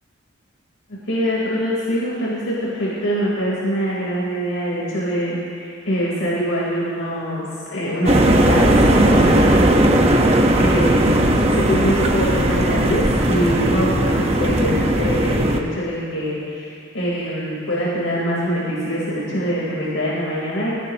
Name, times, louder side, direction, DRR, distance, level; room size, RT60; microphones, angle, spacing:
voice 1, 0.9-8.7 9.0-9.9 10.6-20.7, equal, 80° left, -7 dB, 3.9 m, -24 dB
sound 1, 8.1-15.6, right 1 dB, 30° right, 1.2 m, -17 dB
27.5 x 17.5 x 3.0 m, 2.4 s
head